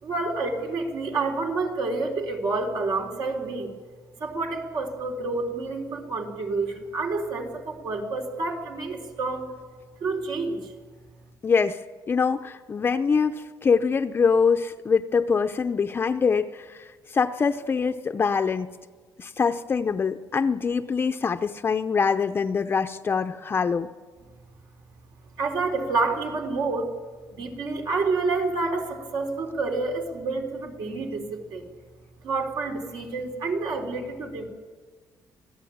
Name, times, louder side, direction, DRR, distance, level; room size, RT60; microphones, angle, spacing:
voice 1, 0.0-3.7 4.2-9.5 10.0-10.6 25.4-26.9 27.3-31.7 32.2-34.4, right 3 dB, 70° right, 2 dB, 4.0 m, -28 dB
voice 2, 11.4-11.8 12.1-16.8 17.1-18.7 19.2-23.9, left 5 dB, 30° left, 7 dB, 0.6 m, -24 dB
26.0 x 17.0 x 8.7 m, 1.5 s
cardioid pair, 150°, 8 cm